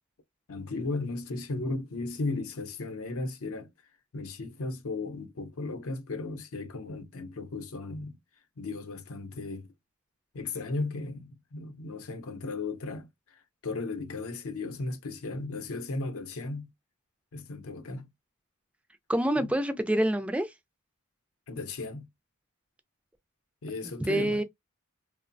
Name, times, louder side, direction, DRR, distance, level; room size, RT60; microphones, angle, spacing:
voice 1, 0.5-3.7 4.1-8.2 8.6-9.7 10.3-16.7 17.3-18.1 21.5-22.1 23.6-24.4, left 3 dB, 65° left, 0.6 m, -36 dB
voice 2, 19.1-20.5 24.0-24.4, right 1 dB, 5° right, 0.3 m, -26 dB
2.9 x 2.0 x 2.5 m
head